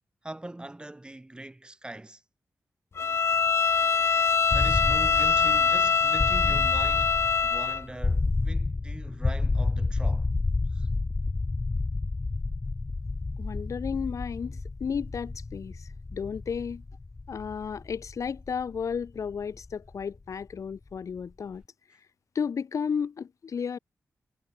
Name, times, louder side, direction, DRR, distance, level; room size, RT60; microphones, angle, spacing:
voice 1, 0.2-2.2 4.5-10.3 10.7-10.9, right 1 dB, 15° right, 4.6 m, -42 dB
Bowed string instrument, 3.0-7.8, left 5 dB, 50° left, 0.6 m, -23 dB
sound 1, 4.5-20.3, left 3 dB, 30° left, 1.1 m, -30 dB
voice 2, 13.4-16.8 17.3-21.6 22.4-23.8, left 6 dB, 65° left, 1.8 m, -33 dB
wide cardioid pair, 105°, 6 cm